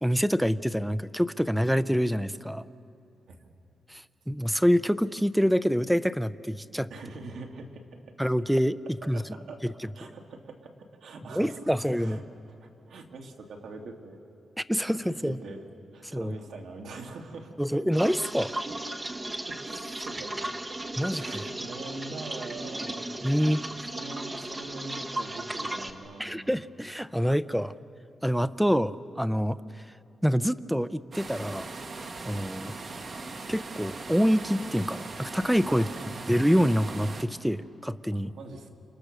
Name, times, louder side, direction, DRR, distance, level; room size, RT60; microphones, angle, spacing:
voice 1, 0.0-2.7 3.9-6.9 8.2-8.8 9.1-9.2 11.3-12.2 14.7-15.4 16.1-16.4 17.6-18.5 21.0-21.2 23.2-23.6 26.2-27.7 28.2-29.6 30.2-31.7 32.2-32.7 33.5-35.9 36.3-38.3, equal, ahead, 14 dB, 0.5 m, -26 dB
voice 2, 6.9-8.0 9.0-14.2 14.9-15.7 15.9-17.9 19.4-20.3 21.1-23.1 23.4-23.6 23.9-26.6 35.7-36.3 38.1-38.7, right 3 dB, 80° right, 2 dB, 2.5 m, -43 dB
sound 1, 17.9-25.9, right 1 dB, 20° right, 1.2 m, -36 dB
sound 2, 31.1-37.2, right 3 dB, 40° right, 1.5 m, -40 dB
30.0 x 27.5 x 6.7 m, 2.8 s
wide cardioid pair, 130°, 0 cm